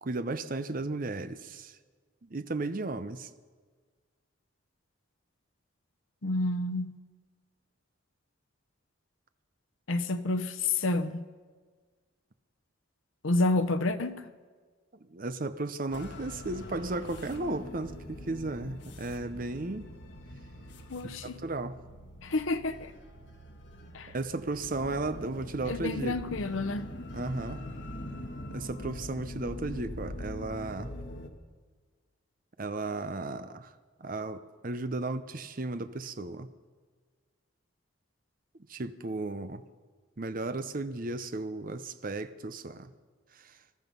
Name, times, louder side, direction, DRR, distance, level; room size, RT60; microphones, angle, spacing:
voice 1, 0.0-1.8 2.2-3.3 15.1-19.9 21.0-21.8 24.1-26.2 27.1-27.6 28.5-30.9 32.6-33.7 34.0-36.5 38.7-39.6 40.2-42.9 43.4-43.5, right 2 dB, 45° right, 0.7 m, -35 dB
voice 2, 6.2-7.0 9.9-11.3 13.2-14.3 20.9-21.4 22.2-22.9 23.9-24.1 25.7-26.9, left 2 dB, 80° left, 0.9 m, -29 dB
sound 1, 15.9-31.3, left 1 dB, 60° left, 1.6 m, -43 dB
20.5 x 13.0 x 5.4 m
head